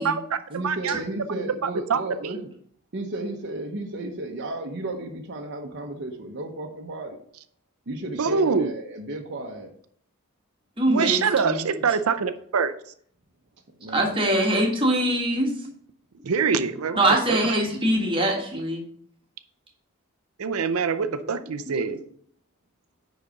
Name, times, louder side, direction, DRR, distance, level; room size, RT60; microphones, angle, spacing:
voice 1, 0.0-1.0 1.6-2.3 8.2-8.7 10.9-12.7 16.2-17.0 17.3-17.4 20.4-22.0, right 5 dB, 75° right, 11 dB, 0.5 m, -25 dB
voice 2, 0.5-2.5 2.9-7.2 7.9-9.7 13.8-14.4, right 2 dB, 55° right, 1 dB, 0.9 m, -33 dB
voice 3, 10.8-11.7 13.9-15.5 17.0-18.8, right 1 dB, 25° right, 1 dB, 1.7 m, -23 dB
9.9 x 4.1 x 5.2 m, 0.62 s
head